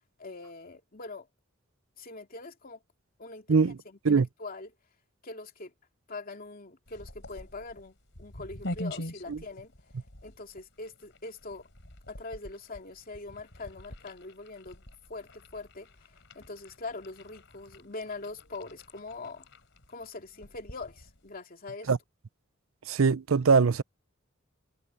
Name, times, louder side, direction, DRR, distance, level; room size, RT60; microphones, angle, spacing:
voice 1, 0.2-1.3 2.0-2.8 3.2-4.7 5.2-5.7 6.1-9.7 10.2-11.7 12.1-14.8 15.1-19.5 19.9-21.9, left 3 dB, 45° left, 2.8 m, -43 dB
sound 1, 6.9-21.4, left 1 dB, 65° left, 4.4 m, -45 dB
voice 2, 22.9-23.8, right 5 dB, 80° right, 0.6 m, -22 dB
head